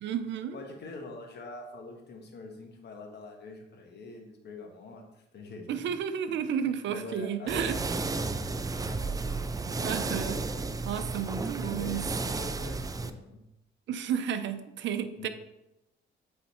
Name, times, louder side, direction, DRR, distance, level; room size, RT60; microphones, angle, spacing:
voice 1, 0.0-0.6 5.7-7.7 9.8-10.4 10.8-12.0 13.9-15.3, right 8 dB, 65° right, 9 dB, 0.6 m, -32 dB
voice 2, 0.5-5.8 6.3-9.2 11.6-13.4 15.2-15.3, left 3 dB, 60° left, 2 dB, 1.4 m, -45 dB
sound 1, 7.5-13.1, right 3 dB, 20° right, 0.4 m, -33 dB
8.2 x 4.0 x 3.1 m, 0.91 s
cardioid pair, 90°, 20 cm